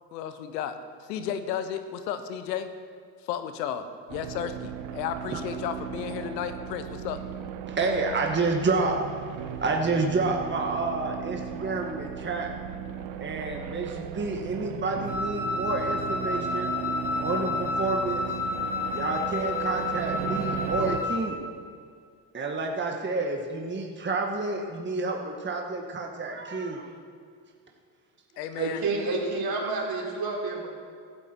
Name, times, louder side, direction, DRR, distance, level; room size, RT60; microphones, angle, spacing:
voice 1, 0.1-0.8 1.0-2.7 3.2-7.2 28.4-28.9, left 9 dB, 90° left, 10 dB, 1.1 m, -33 dB
sound 1, 4.1-21.0, right 9 dB, 70° right, 1.1 m, -36 dB
voice 2, 7.7-9.0 9.6-12.5 13.2-16.7 17.2-18.2 18.9-21.4 22.3-26.9, right 3 dB, 20° right, 2 dB, 1.7 m, -29 dB
Wind instrument woodwind instrument, 15.1-21.3, left 4 dB, 5° right, 3.7 m, -31 dB
voice 3, 28.6-30.7, right 3 dB, 45° right, -1 dB, 4.3 m, -29 dB
15.5 x 13.0 x 4.6 m, 2.1 s
hypercardioid pair, 75°, 48 cm